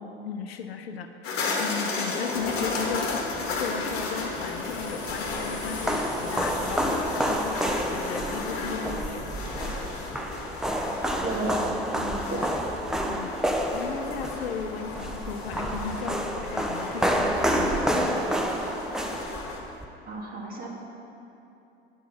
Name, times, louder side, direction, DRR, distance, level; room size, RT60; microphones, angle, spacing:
voice 1, 0.2-9.2 13.1-13.3 13.7-18.0, left 6 dB, 70° left, 7 dB, 0.7 m, -36 dB
sound 1, 1.2-19.6, left 3 dB, 45° left, 1.5 m, -34 dB
sound 2, 2.3-16.0, left 2 dB, 25° left, 1.7 m, -43 dB
sound 3, 4.8-19.8, equal, ahead, 0.5 m, -29 dB
voice 2, 11.2-12.6 20.1-20.7, right 1 dB, 30° right, -2 dB, 1.8 m, -32 dB
10.0 x 5.4 x 5.8 m, 2.9 s
figure-of-eight pair, 80°, 32 cm